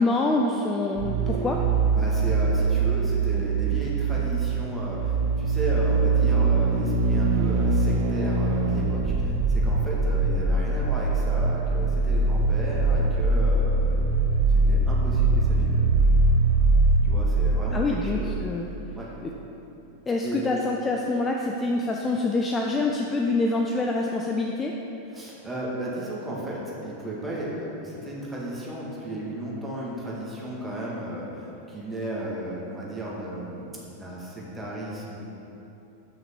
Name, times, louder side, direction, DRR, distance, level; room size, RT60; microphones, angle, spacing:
voice 1, 0.0-1.6 17.7-18.6 19.2-19.3 20.1-24.7, left 2 dB, 15° left, 1 dB, 0.5 m, -25 dB
sound 1, 1.0-18.5 18.8-18.9, right 3 dB, 50° right, 0.7 m, -22 dB
voice 2, 1.9-14.1 14.5-15.9 17.0-18.4 18.9-19.1 20.2-20.4 25.1-33.7 33.9-35.2, right 1 dB, 10° right, -5 dB, 2.0 m, -34 dB
7.5 x 6.0 x 5.9 m, 3.0 s
figure-of-eight pair, 90°, 0 cm